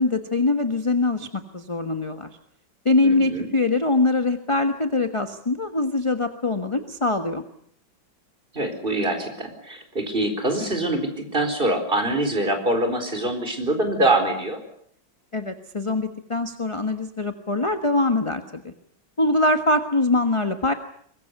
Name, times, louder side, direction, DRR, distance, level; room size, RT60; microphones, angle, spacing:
voice 1, 0.0-2.3 2.8-7.4 15.3-18.7 19.2-20.7, left 2 dB, 20° left, 8 dB, 1.2 m, -23 dB
voice 2, 3.0-3.5 8.5-14.6, right 1 dB, 25° right, 6 dB, 4.7 m, -24 dB
24.0 x 21.0 x 8.2 m, 0.64 s
omnidirectional pair, 2.1 m